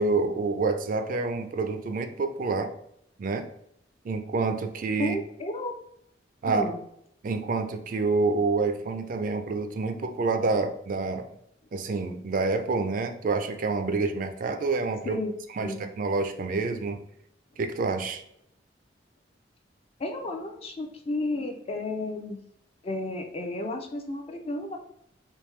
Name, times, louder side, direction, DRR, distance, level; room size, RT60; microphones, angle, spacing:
voice 1, 0.0-2.7 3.2-3.5 4.0-5.2 6.4-6.6 7.2-11.3 11.7-15.2 15.6-17.0 17.6-18.2, right 3 dB, 50° right, 7 dB, 0.4 m, -27 dB
voice 2, 5.0-5.8 6.4-6.8 15.1-15.3 15.6-15.8 20.0-22.4 22.8-24.8, left 2 dB, 35° left, 4 dB, 0.4 m, -32 dB
3.5 x 2.7 x 3.1 m, 0.73 s
head